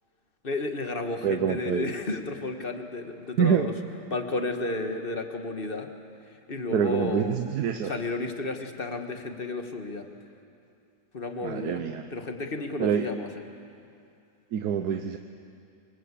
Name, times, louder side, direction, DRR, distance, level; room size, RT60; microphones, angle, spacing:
voice 1, 0.4-3.7 4.1-5.9 6.5-7.4 7.8-10.1 11.1-13.3, left 2 dB, 30° left, 5 dB, 1.6 m, -32 dB
voice 2, 1.2-1.9 3.4-3.7 6.7-7.9 11.4-12.0 12.8-13.1 14.5-15.2, right 7 dB, 65° right, 7 dB, 1.3 m, -26 dB
24.5 x 22.0 x 8.4 m, 2.5 s
omnidirectional pair, 2.0 m